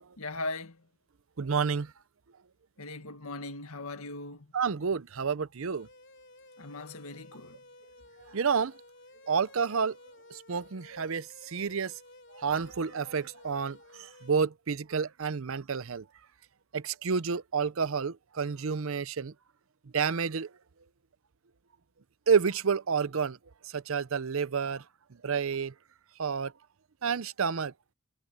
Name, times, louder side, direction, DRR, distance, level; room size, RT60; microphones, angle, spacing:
voice 1, 0.2-0.8 2.8-4.5 6.6-7.6, left 2 dB, 80° left, 1.9 m, -39 dB
voice 2, 1.4-1.9 4.5-5.9 8.3-8.8 9.2-10.0 10.3-12.0 12.3-16.1 16.7-19.3 19.9-20.5 22.3-23.4 23.6-24.8 25.2-25.7 26.2-26.5 27.0-27.7, right 6 dB, 70° right, 0.6 m, -29 dB
sound 1, 5.7-14.4, left 2 dB, 55° left, 3.9 m, -54 dB
head